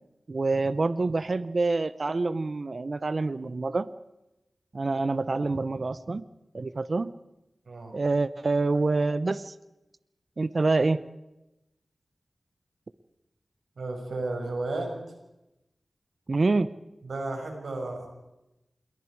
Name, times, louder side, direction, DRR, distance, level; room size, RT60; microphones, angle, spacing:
voice 1, 0.3-3.9 4.7-6.2 6.5-7.1 7.9-9.5 10.4-11.0 16.3-16.7, right 3 dB, 60° right, 15 dB, 0.8 m, -26 dB
voice 2, 13.8-14.9 17.0-18.1, right 2 dB, 85° right, 2 dB, 5.6 m, -33 dB
27.5 x 22.0 x 4.7 m, 0.93 s
cardioid pair, 45°, 0 cm